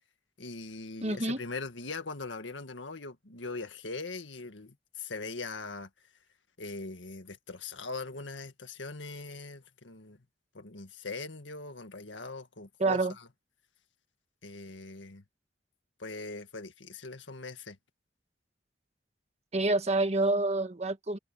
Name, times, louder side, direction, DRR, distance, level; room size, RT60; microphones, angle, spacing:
voice 1, 0.4-5.9 6.6-10.2 10.5-13.3 14.4-15.2 16.0-17.8, left 3 dB, 90° left, 1.9 m, -41 dB
voice 2, 1.0-1.4 12.8-13.1 19.5-21.2, right 2 dB, 35° right, 1.4 m, -27 dB
head